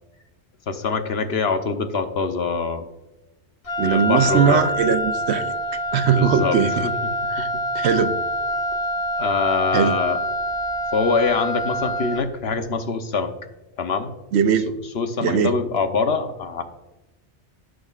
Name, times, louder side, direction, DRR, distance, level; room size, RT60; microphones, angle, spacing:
voice 1, 0.7-2.9 3.8-4.6 6.1-7.1 7.4-7.5 7.9-8.0 9.1-10.2 10.9-13.3 13.8-14.1 14.8-16.6, left 4 dB, 65° left, 7 dB, 1.1 m, -24 dB
Wind instrument woodwind instrument, 3.6-12.4, equal, 35° left, 0.9 m, -26 dB
voice 2, 3.8-5.5 5.9-6.9 7.3-7.5 7.7-8.1 9.7-9.9 14.3-14.7 15.2-15.5, right 7 dB, 75° right, 11 dB, 0.9 m, -20 dB
16.0 x 6.4 x 2.4 m, 1.0 s
omnidirectional pair, 1.2 m